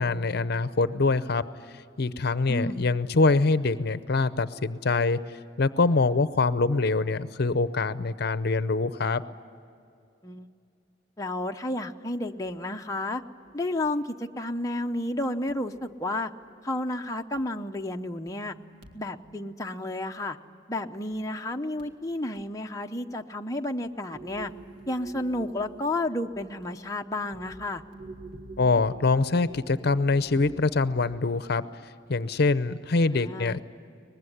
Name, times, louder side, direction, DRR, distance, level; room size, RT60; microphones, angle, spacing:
voice 1, 0.0-1.4 2.0-5.2 5.6-9.2 28.6-31.6 32.1-33.6, left 3 dB, 55° left, 14 dB, 0.7 m, -24 dB
voice 2, 2.5-2.9 10.2-10.5 11.2-13.2 13.5-16.3 16.6-18.5 18.9-20.4 20.7-24.5 24.9-27.8 33.0-33.6, left 1 dB, 20° left, 3 dB, 0.7 m, -31 dB
sound 1, 12.4-12.6 13.1-13.5 13.8-13.9 14.4-14.5 15.0-17.4 17.8-20.6 20.9-21.4 21.8-22.5 22.9-23.3 23.6-31.2, right 3 dB, 75° right, 1.9 m, -49 dB
23.5 x 20.5 x 9.9 m, 2.5 s
head